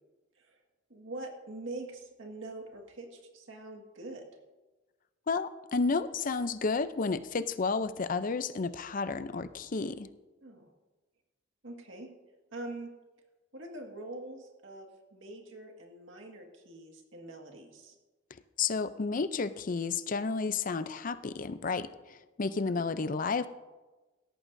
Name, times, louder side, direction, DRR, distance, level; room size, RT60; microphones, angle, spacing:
voice 1, 0.9-4.2 10.4-10.7 11.6-12.1 12.5-12.9 13.5-18.0 22.6-22.8, right 2 dB, 80° right, 1 dB, 1.9 m, -44 dB
voice 2, 5.3-10.1 18.6-23.5, left 4 dB, 45° left, 13 dB, 0.5 m, -31 dB
17.0 x 14.0 x 2.6 m, 1.2 s
head